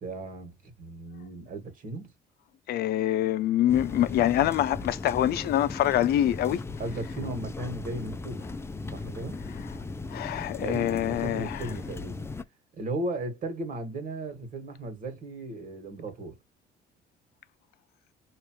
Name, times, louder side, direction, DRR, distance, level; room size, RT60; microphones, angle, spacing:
voice 1, 0.0-2.1 6.8-8.5 8.9-9.4 10.6-12.3 12.8-16.4, right 2 dB, 55° right, 2.1 m, -36 dB
voice 2, 2.7-6.6 10.1-11.7, left 12 dB, 70° left, 0.6 m, -25 dB
sound 1, 3.7-12.4, left 3 dB, 15° left, 0.5 m, -37 dB
5.0 x 3.2 x 3.1 m
cardioid pair, 110°, 17 cm